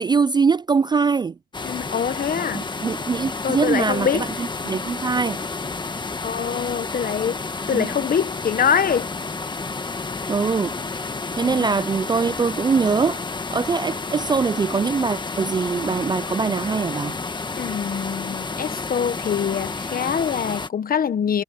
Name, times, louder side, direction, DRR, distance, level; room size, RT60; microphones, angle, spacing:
voice 1, 0.0-1.3 2.5-5.4 7.7-7.9 10.3-10.7 11.4-13.2 13.5-17.2, right 5 dB, 20° right, 0.3 m, -22 dB
sound 1, 1.5-20.7, left 3 dB, 25° left, 1.4 m, -30 dB
voice 2, 1.6-2.6 3.4-4.3 6.2-7.4 7.7-9.1 11.4-11.7 17.6-21.4, left 7 dB, 45° left, 1.3 m, -24 dB
cardioid pair, 90°, 20 cm